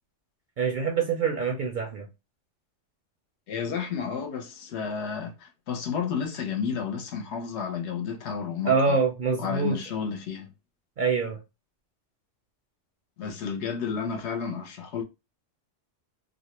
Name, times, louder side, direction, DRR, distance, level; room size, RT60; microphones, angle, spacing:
voice 1, 0.6-2.1 8.7-9.8 11.0-11.4, right 5 dB, 55° right, 0.5 m, -25 dB
voice 2, 3.5-9.0 9.4-10.5 13.2-15.0, left 6 dB, 70° left, 0.8 m, -31 dB
2.4 x 2.1 x 2.9 m
omnidirectional pair, 1.3 m